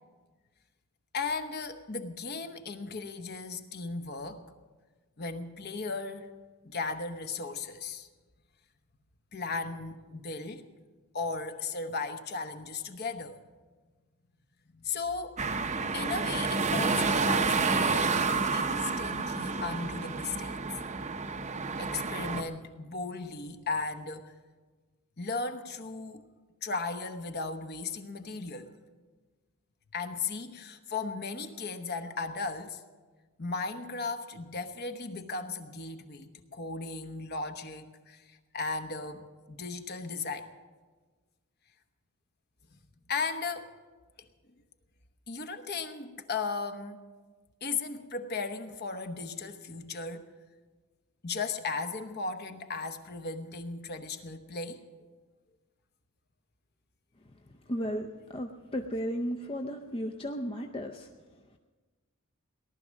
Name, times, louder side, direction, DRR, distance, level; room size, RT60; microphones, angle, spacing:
voice 1, 1.1-4.4 5.2-6.3 6.6-8.1 9.3-10.7 11.1-13.4 14.7-15.4 15.9-20.6 21.8-24.3 25.2-26.3 26.6-28.7 29.9-32.8 33.4-40.5 43.1-43.7 45.3-47.0 47.6-50.3 51.2-54.8, left 4 dB, 45° left, 7 dB, 1.0 m, -36 dB
sound 1, 15.4-22.4, right 4 dB, 30° right, 0.7 m, -29 dB
voice 2, 57.7-61.1, equal, 25° left, 3 dB, 0.6 m, -34 dB
18.0 x 12.0 x 6.4 m, 1.3 s
head